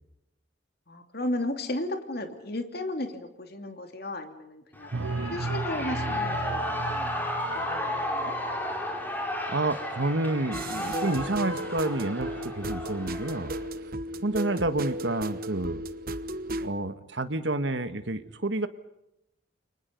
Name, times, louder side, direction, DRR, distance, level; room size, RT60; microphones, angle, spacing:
voice 1, 0.9-4.9 5.3-7.1 7.5-8.3 14.4-14.7, left 1 dB, 55° left, 6 dB, 2.8 m, -35 dB
Shout / Cheering, 4.7-13.7, left 1 dB, 10° left, 5.0 m, -33 dB
sound 1, 4.9-8.8 10.6-11.1 11.5-11.6 11.9-12.5, right 3 dB, 85° right, 0.8 m, -36 dB
voice 2, 9.5-13.5 14.2-15.8 16.6-18.7, right 2 dB, 70° right, 10 dB, 1.5 m, -29 dB
sound 2, 10.5-16.7, right 1 dB, 50° right, 1.1 m, -35 dB
30.0 x 24.0 x 5.3 m, 0.86 s
head